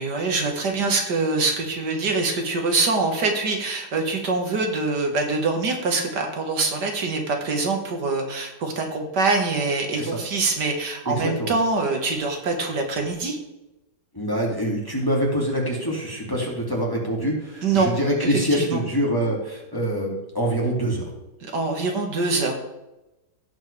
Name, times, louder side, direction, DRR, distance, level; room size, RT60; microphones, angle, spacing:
voice 1, 0.0-13.4 17.6-17.9 18.2-18.8 21.4-22.5, right 3 dB, 70° right, 3 dB, 2.1 m, -24 dB
voice 2, 11.1-11.5 14.1-21.1, equal, 10° left, -3 dB, 2.4 m, -25 dB
17.0 x 6.3 x 3.3 m, 0.98 s
omnidirectional pair, 1.9 m